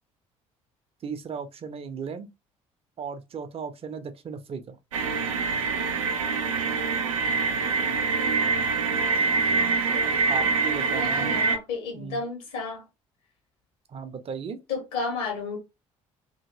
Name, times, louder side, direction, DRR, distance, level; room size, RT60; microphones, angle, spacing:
voice 1, 1.0-2.3 3.0-4.8 9.8-11.4 11.9-12.2 13.9-14.6, right 6 dB, 35° right, 0.6 m, -36 dB
sound 1, 4.9-11.6, right 4 dB, 75° right, 0.5 m, -25 dB
voice 2, 10.9-12.8 14.7-15.6, left 4 dB, 65° left, 1.5 m, -32 dB
2.8 x 2.8 x 2.7 m
figure-of-eight pair, 50°, 17 cm